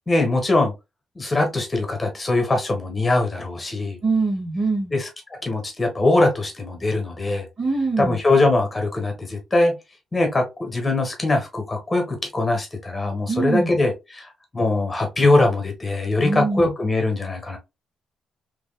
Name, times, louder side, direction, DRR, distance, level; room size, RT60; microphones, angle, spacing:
voice 1, 0.1-0.7 1.1-4.0 4.9-5.1 5.4-7.5 8.0-9.7 10.1-17.6, left 2 dB, 20° left, 1.3 m, -22 dB
voice 2, 4.0-4.9 7.6-8.2 13.3-13.7 16.2-16.7, right 3 dB, 55° right, 1.7 m, -23 dB
3.4 x 3.2 x 2.2 m
cardioid pair, 90°, 0 cm